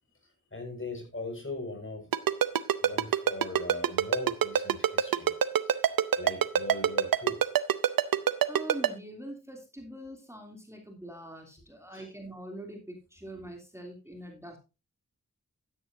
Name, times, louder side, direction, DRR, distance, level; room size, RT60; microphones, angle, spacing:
voice 1, 0.5-2.1 2.8-5.3 5.7-5.8 6.2-7.4 11.9-12.1, left 2 dB, 35° left, 5.2 m, -39 dB
Ringtone, 2.1-8.9, right 9 dB, 85° right, 0.7 m, -23 dB
voice 2, 8.5-14.6, right 1 dB, 10° right, 2.9 m, -43 dB
12.5 x 9.7 x 2.6 m
cardioid pair, 45°, 33 cm